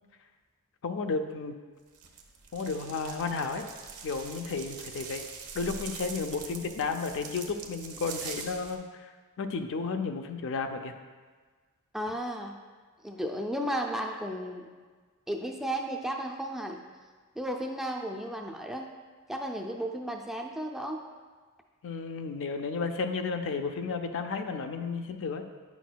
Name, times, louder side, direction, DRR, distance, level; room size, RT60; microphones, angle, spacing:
voice 1, 0.8-1.5 2.5-3.7 4.0-5.3 5.5-9.1 9.4-10.9 21.8-25.4, left 4 dB, 60° left, 7 dB, 0.5 m, -33 dB
sound 1, 1.9-8.8, right 5 dB, 85° right, 0.8 m, -43 dB
voice 2, 11.9-12.6 13.0-14.7 15.3-16.8 17.4-18.9 19.3-21.0, right 1 dB, ahead, 2 dB, 0.3 m, -34 dB
9.1 x 6.0 x 2.2 m, 1.5 s
head